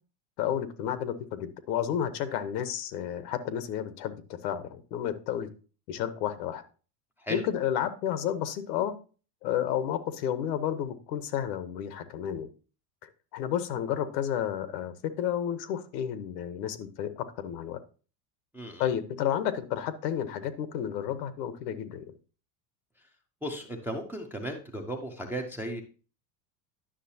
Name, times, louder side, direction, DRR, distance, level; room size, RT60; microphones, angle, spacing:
voice 1, 0.4-5.5 5.9-6.6 7.3-9.0 9.4-12.5 13.0-17.8 18.8-22.1, left 10 dB, 90° left, 13 dB, 1.0 m, -31 dB
voice 2, 18.5-18.9 23.4-25.8, right 1 dB, 5° right, 1 dB, 0.3 m, -35 dB
10.0 x 6.2 x 2.7 m, 0.36 s
supercardioid pair, 145°, 47 cm